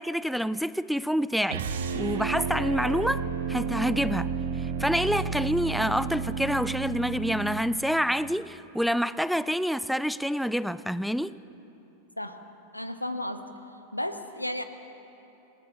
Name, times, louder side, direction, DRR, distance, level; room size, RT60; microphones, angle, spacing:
voice 1, 0.0-4.3 4.6-11.3, equal, ahead, 17 dB, 0.4 m, -27 dB
sound 1, 1.5-7.6, right 6 dB, 60° right, 1.4 m, -31 dB
voice 2, 12.7-13.4 13.9-14.6, left 1 dB, 85° left, 9 dB, 1.1 m, -33 dB
27.0 x 19.0 x 6.2 m, 3.0 s
figure-of-eight pair, 90°, 0 cm